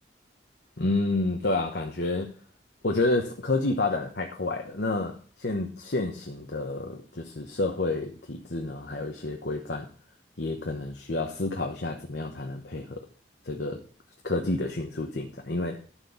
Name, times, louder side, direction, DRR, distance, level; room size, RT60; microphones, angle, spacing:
voice 1, 0.8-2.3 2.8-9.9 10.4-13.0 13.5-13.8 14.2-15.8, left 2 dB, 65° left, 3 dB, 1.1 m, -29 dB
11.5 x 4.7 x 7.0 m, 0.41 s
head